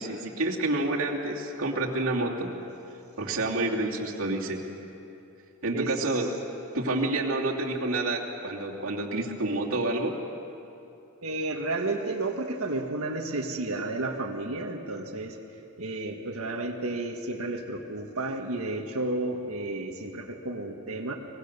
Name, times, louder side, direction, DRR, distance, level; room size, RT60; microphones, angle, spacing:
voice 1, 0.0-2.5 3.2-4.6 5.6-6.3 6.7-10.1, right 2 dB, 70° right, -2 dB, 2.8 m, -28 dB
voice 2, 11.2-15.4 15.8-21.1, right 2 dB, 90° right, 2 dB, 1.6 m, -32 dB
23.5 x 21.5 x 6.8 m, 2.8 s
head